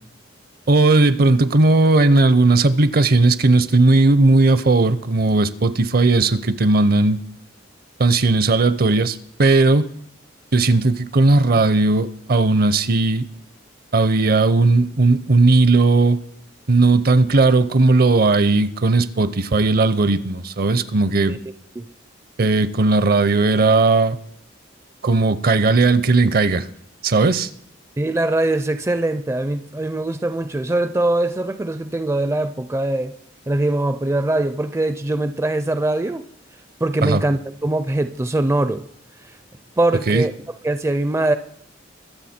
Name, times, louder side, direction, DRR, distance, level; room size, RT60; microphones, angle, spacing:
voice 1, 0.7-7.2 8.0-9.9 10.5-13.3 13.9-16.2 16.7-21.4 22.4-24.2 25.0-26.7 27.0-27.5 37.0-37.2 40.1-40.3, right 3 dB, 50° right, 0.6 m, -16 dB
voice 2, 28.0-33.1 33.5-36.3 36.8-38.8 39.8-40.3 40.6-41.4, right 2 dB, 15° right, 0.4 m, -22 dB
22.5 x 7.8 x 4.3 m
head